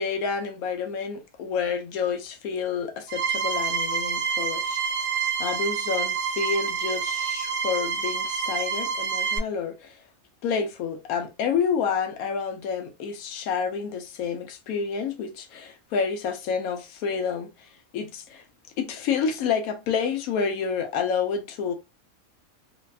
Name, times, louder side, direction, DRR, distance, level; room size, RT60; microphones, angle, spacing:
voice 1, 0.0-4.8 5.4-9.9 10.4-17.7 17.9-18.4 18.8-21.7, left 6 dB, 80° left, 1.1 m, -29 dB
sound 1, 3.1-9.4, right 6 dB, 85° right, 1.1 m, -27 dB
3.2 x 2.2 x 2.3 m
omnidirectional pair, 1.5 m